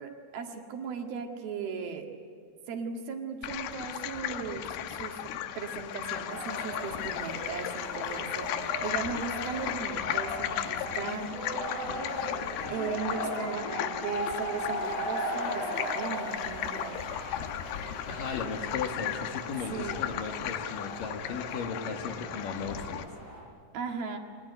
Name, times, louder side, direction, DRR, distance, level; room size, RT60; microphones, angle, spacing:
voice 1, 0.0-2.1 2.7-11.3 12.7-17.0 19.7-20.1 23.7-24.2, right 6 dB, 60° right, 3 dB, 3.5 m, -37 dB
sound 1, 3.4-23.0, left 11 dB, 75° left, 2.6 m, -36 dB
sound 2, 6.3-23.4, equal, 35° left, 7.5 m, -38 dB
voice 2, 18.1-23.1, left 5 dB, 60° left, 3 dB, 2.8 m, -36 dB
24.5 x 20.0 x 9.6 m, 2.3 s
omnidirectional pair, 5.2 m